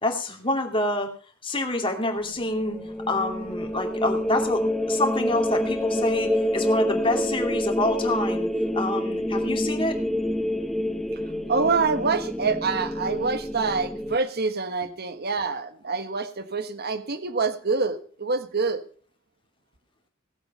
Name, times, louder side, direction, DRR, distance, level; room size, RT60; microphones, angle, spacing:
voice 1, 0.0-1.2 1.4-2.8 3.1-8.5 8.7-10.0, left 1 dB, 25° left, 3 dB, 2.6 m, -27 dB
sound 1, 2.2-14.2, left 1 dB, ahead, 0.8 m, -27 dB
voice 2, 11.5-18.8, right 4 dB, 50° right, 10 dB, 1.4 m, -26 dB
18.5 x 8.1 x 5.5 m, 0.43 s
head